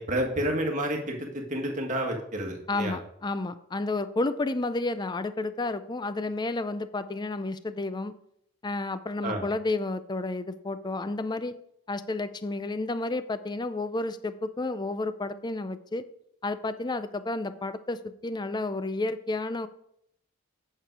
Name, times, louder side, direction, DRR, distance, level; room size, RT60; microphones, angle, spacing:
voice 1, 0.0-3.0 9.2-9.4, right 1 dB, 35° right, 1 dB, 1.6 m, -30 dB
voice 2, 2.7-8.1 8.6-11.5 11.9-16.0 16.4-19.7, left 2 dB, 20° left, 13 dB, 0.4 m, -31 dB
8.9 x 6.8 x 4.7 m, 0.73 s
head